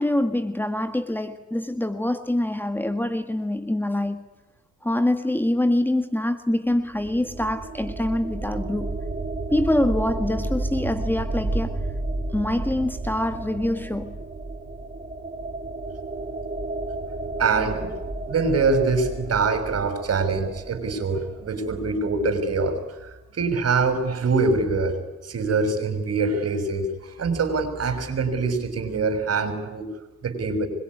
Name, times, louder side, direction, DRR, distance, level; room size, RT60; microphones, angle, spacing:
voice 1, 0.0-4.3 4.8-9.0 9.5-11.8 12.3-14.2, left 1 dB, 5° left, 1.7 m, -25 dB
sound 1, 6.7-21.5, right 2 dB, 25° right, 3.9 m, -32 dB
voice 2, 17.4-29.9 30.2-30.7, right 4 dB, 50° right, 6.3 m, -24 dB
25.5 x 22.0 x 9.8 m
cardioid pair, 85°, 31 cm